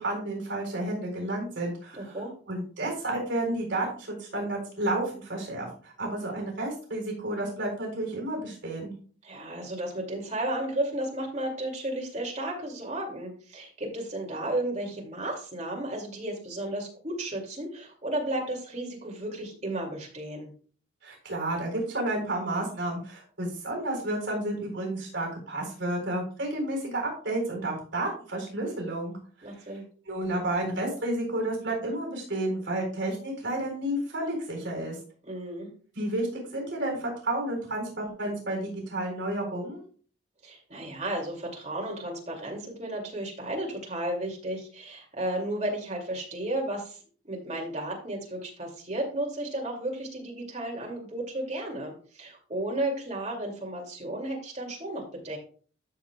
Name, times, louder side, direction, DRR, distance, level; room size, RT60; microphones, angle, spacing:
voice 1, 0.0-2.1 2.5-8.9 21.0-29.1 30.1-35.0 36.0-39.8, right 1 dB, 65° right, 0 dB, 4.0 m, -31 dB
voice 2, 1.9-2.3 9.2-20.5 29.4-29.8 35.2-35.7 40.4-55.4, right 1 dB, 35° right, -1 dB, 2.5 m, -33 dB
13.0 x 6.6 x 2.3 m, 0.42 s
head